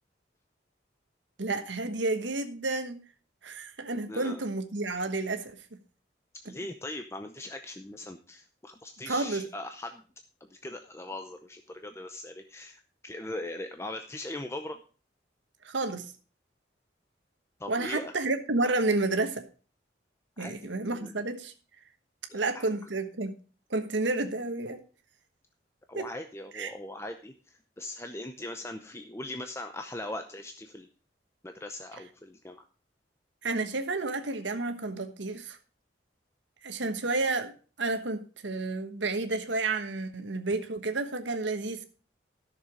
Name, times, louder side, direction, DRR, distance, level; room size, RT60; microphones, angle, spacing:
voice 1, 1.4-3.0 3.4-5.6 9.1-9.4 15.6-16.1 17.7-19.4 20.4-21.5 22.3-23.3 23.7-24.8 25.9-26.0 26.5-26.7 33.4-35.6 36.6-37.5 37.8-41.8, right 2 dB, 85° right, 7 dB, 1.3 m, -30 dB
voice 2, 4.1-4.4 6.4-10.0 10.4-14.8 17.6-18.1 20.4-21.1 22.3-22.7 25.9-30.9 31.4-32.7, left 1 dB, 15° left, 6 dB, 0.6 m, -40 dB
12.5 x 6.7 x 5.0 m, 0.37 s
head